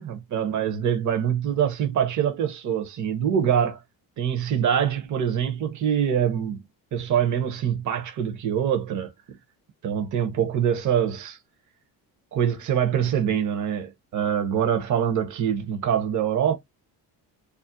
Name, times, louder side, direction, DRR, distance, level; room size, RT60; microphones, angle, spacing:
voice 1, 0.0-3.8 4.2-6.6 6.9-9.1 9.8-11.4 12.3-16.5, right 8 dB, 45° right, 0.7 m, -24 dB
2.4 x 2.0 x 2.6 m
cardioid pair, 95°, 42 cm